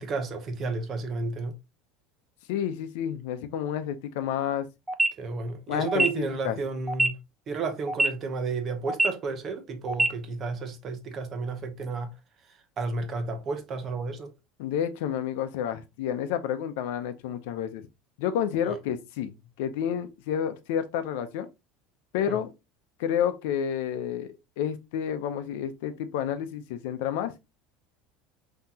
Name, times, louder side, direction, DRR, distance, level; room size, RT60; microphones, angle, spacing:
voice 1, 0.0-1.5 5.2-7.2 7.5-12.1 12.8-14.3 18.6-18.8 22.3-22.4, right 4 dB, 30° right, 0.8 m, -32 dB
voice 2, 2.5-4.7 5.7-6.6 14.6-17.9 18.2-21.5 22.1-22.5 23.0-27.3, left 9 dB, 75° left, 0.6 m, -30 dB
sound 1, 4.9-5.1 5.9-6.1 6.9-7.1 7.9-8.1 8.9-9.1 9.9-10.1, right 2 dB, 5° right, 0.4 m, -22 dB
5.6 x 2.9 x 2.8 m
cardioid pair, 165°, 0 cm